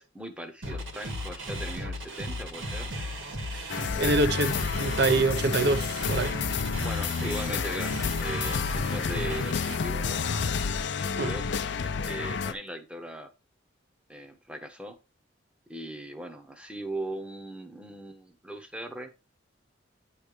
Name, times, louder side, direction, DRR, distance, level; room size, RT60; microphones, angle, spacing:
voice 1, 0.0-2.9 3.8-4.3 6.5-6.6 6.8-10.2 11.0-11.5 11.8-13.3 14.1-15.0 15.7-19.1, right 1 dB, 5° right, 0.9 m, -39 dB
sound 1, 0.6-9.8, left 1 dB, 80° right, 1.6 m, -36 dB
voice 2, 3.5-4.5 4.8-6.3 11.2-11.3, right 3 dB, 55° right, 0.7 m, -26 dB
sound 2, 3.7-12.5, left 5 dB, 60° left, 0.5 m, -30 dB
9.0 x 3.2 x 5.0 m
head